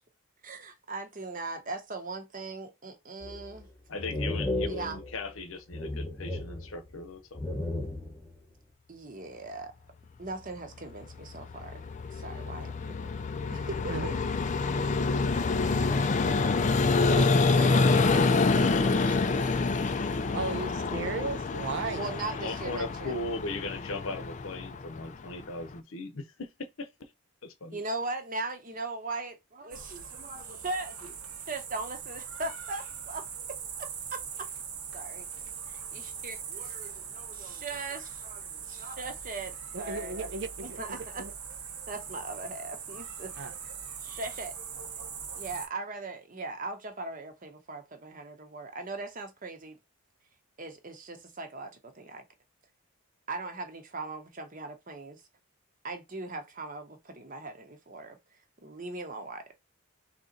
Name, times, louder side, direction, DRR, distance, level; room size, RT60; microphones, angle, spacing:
voice 1, 0.4-3.7 4.7-5.0 8.9-9.7 10.2-11.8 12.1-13.2 13.5-14.2 15.7-16.1 17.0-19.3 22.0-23.2 27.7-31.1 31.5-34.5 34.9-35.3 35.9-40.3 40.6-41.2 41.9-43.3 44.0-44.6 45.3-49.8 50.6-52.2 53.3-55.2 55.8-58.2 58.6-59.4, right 3 dB, 35° right, 0.9 m, -39 dB
sound 1, 3.2-3.6 4.0-5.4 5.7-7.0 7.3-8.3, left 2 dB, 10° left, 0.9 m, -34 dB
voice 2, 3.9-7.4 22.3-27.1 27.4-27.8, left 2 dB, 65° left, 0.8 m, -38 dB
Vehicle, 11.0-25.7, left 3 dB, 35° left, 0.3 m, -27 dB
voice 3, 20.3-22.1 39.7-40.8 41.2-41.3 43.4-43.5, right 3 dB, 50° right, 0.4 m, -35 dB
sound 2, 29.7-45.7, right 7 dB, 80° right, 1.1 m, -41 dB
3.8 x 2.9 x 3.8 m
head